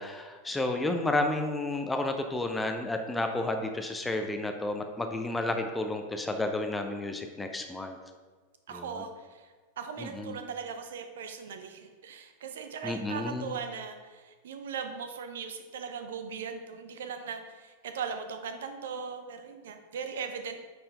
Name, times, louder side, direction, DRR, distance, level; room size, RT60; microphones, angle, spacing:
voice 1, 0.0-8.0 8.7-9.0 10.0-10.4 12.8-13.5, left 2 dB, 10° left, 5 dB, 0.6 m, -31 dB
voice 2, 8.7-20.6, right 6 dB, 60° right, 7 dB, 0.6 m, -39 dB
8.6 x 4.3 x 3.4 m, 1.4 s
figure-of-eight pair, 90°, 0 cm